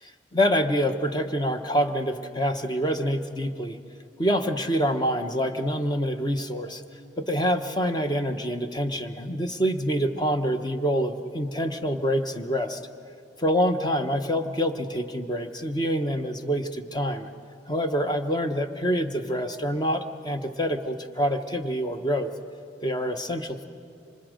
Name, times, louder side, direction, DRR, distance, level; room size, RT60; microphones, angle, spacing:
voice 1, 0.0-3.8 4.2-6.8 7.2-12.8 13.4-17.3 17.7-22.3 22.8-23.6, equal, 20° left, 6 dB, 0.9 m, -26 dB
27.0 x 26.0 x 5.1 m, 2.6 s
head